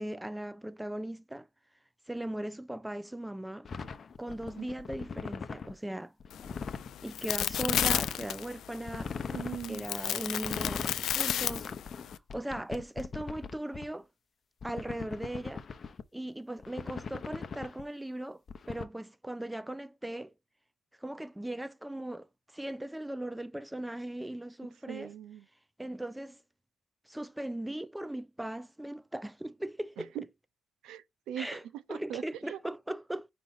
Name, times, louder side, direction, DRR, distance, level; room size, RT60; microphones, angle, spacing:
voice 1, 0.0-1.5 2.1-3.7 4.2-6.1 7.0-9.3 9.7-11.7 12.0-14.1 14.6-15.6 16.1-18.4 18.7-20.3 21.0-25.1 25.8-26.4 27.1-30.1 31.4-31.6 31.9-33.3, right 1 dB, 5° right, 0.4 m, -38 dB
sound 1, 3.6-5.7 6.2-6.9 7.5-8.2 8.9-9.6 10.3-11.0 11.4-13.8 14.6-16.0 16.6-17.8 18.5-18.8, left 5 dB, 40° left, 0.7 m, -39 dB
sound 2, 6.3-12.2, left 11 dB, 75° left, 0.4 m, -33 dB
voice 2, 9.3-9.9 24.9-25.5 30.0-30.2 30.8-31.5 31.7-32.6, right 10 dB, 85° right, 0.5 m, -40 dB
5.1 x 4.7 x 4.0 m
cardioid pair, 90°, 0 cm